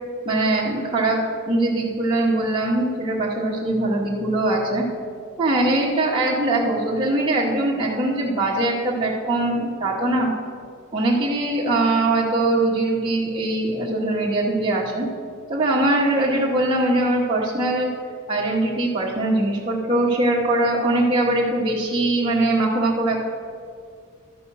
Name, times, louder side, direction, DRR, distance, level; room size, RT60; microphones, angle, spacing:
voice 1, 0.2-1.2 1.5-4.9 5.4-10.3 10.9-15.1 15.5-17.9 18.3-23.2, right 2 dB, 25° right, -6 dB, 1.1 m, -21 dB
12.5 x 5.2 x 6.2 m, 2.3 s
head